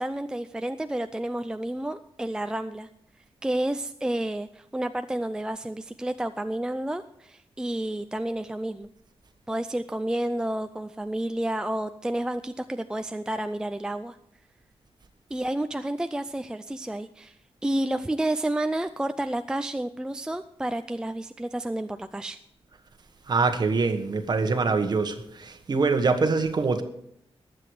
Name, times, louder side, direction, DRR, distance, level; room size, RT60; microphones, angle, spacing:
voice 1, 0.0-2.9 3.4-8.9 9.5-14.2 15.3-17.4 17.6-22.4, right 1 dB, 5° right, 0.4 m, -30 dB
voice 2, 23.3-26.8, right 4 dB, 45° right, 1.4 m, -24 dB
20.0 x 7.9 x 4.8 m
wide cardioid pair, 165°, 10 cm